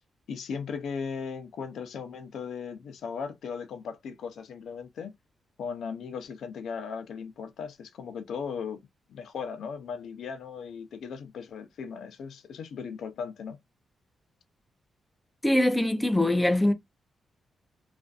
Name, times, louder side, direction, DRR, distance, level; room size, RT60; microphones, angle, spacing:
voice 1, 0.3-5.1 5.6-8.8 9.1-13.6, left 6 dB, 75° left, 0.5 m, -37 dB
voice 2, 15.4-16.7, left 1 dB, 5° left, 0.3 m, -23 dB
2.5 x 2.3 x 2.2 m
wide cardioid pair, 170°, 0 cm